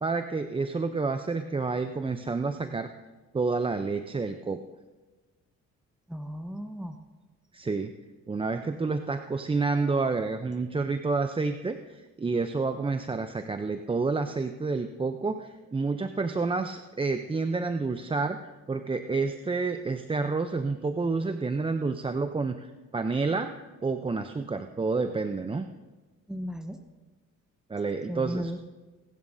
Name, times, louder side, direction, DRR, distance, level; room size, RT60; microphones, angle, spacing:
voice 1, 0.0-2.9 3.3-4.6 7.5-7.9 8.3-18.4 18.7-23.5 23.8-25.7 27.7-28.5, right 4 dB, 20° right, 8 dB, 0.6 m, -29 dB
voice 2, 6.1-7.0 26.3-26.8 28.1-28.6, equal, ahead, 6 dB, 0.9 m, -35 dB
26.5 x 11.0 x 2.7 m, 1.2 s
cardioid pair, 90°, 30 cm